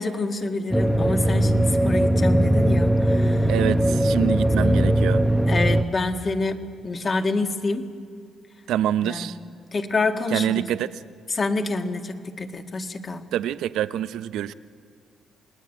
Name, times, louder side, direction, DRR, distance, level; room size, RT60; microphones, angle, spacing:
voice 1, 0.0-3.5 5.5-6.6 6.8-7.9 9.0-9.4 9.7-10.6 11.3-13.2, left 3 dB, 40° left, 5 dB, 2.0 m, -27 dB
sound 1, 0.7-5.8, right 1 dB, ahead, 1.0 m, -20 dB
voice 2, 3.5-5.2 8.7-9.4 10.3-10.9 13.3-14.5, right 11 dB, 85° right, 13 dB, 0.7 m, -25 dB
28.5 x 19.5 x 9.3 m, 2.2 s
cardioid pair, 90°, 0 cm